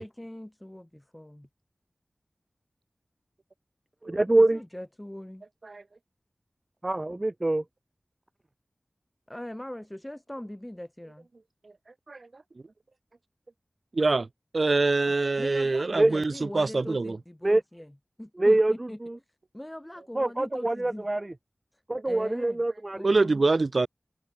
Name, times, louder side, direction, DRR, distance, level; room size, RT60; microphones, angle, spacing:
voice 1, 0.0-1.5 4.3-5.4 9.3-11.3 15.0-17.9 18.2-19.0 19.5-21.1 21.7-22.6 22.9-23.4, left 1 dB, 15° left, 7.2 m, -41 dB
voice 2, 4.1-4.6 6.8-7.6 16.0-16.1 17.4-17.6 18.4-19.2 20.1-21.3 21.9-23.1, right 2 dB, 30° right, 0.8 m, -24 dB
voice 3, 12.1-12.4 13.9-14.3 14.5-17.2 23.0-23.9, right 3 dB, 65° right, 1.2 m, -25 dB
wide cardioid pair, 60°, 0 cm